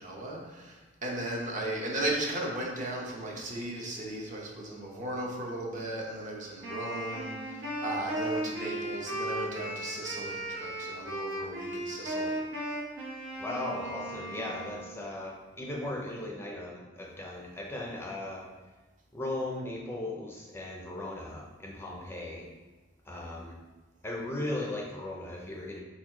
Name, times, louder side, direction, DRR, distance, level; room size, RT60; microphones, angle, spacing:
voice 1, 0.0-12.4, right 1 dB, 40° right, -2 dB, 0.9 m, -36 dB
Wind instrument woodwind instrument, 6.6-15.0, right 1 dB, 85° right, 1.2 m, -36 dB
voice 2, 13.4-18.4 19.1-22.5 23.1-23.6 24.0-25.8, left 1 dB, 15° left, -1 dB, 0.5 m, -37 dB
4.3 x 4.2 x 2.9 m, 1.2 s
head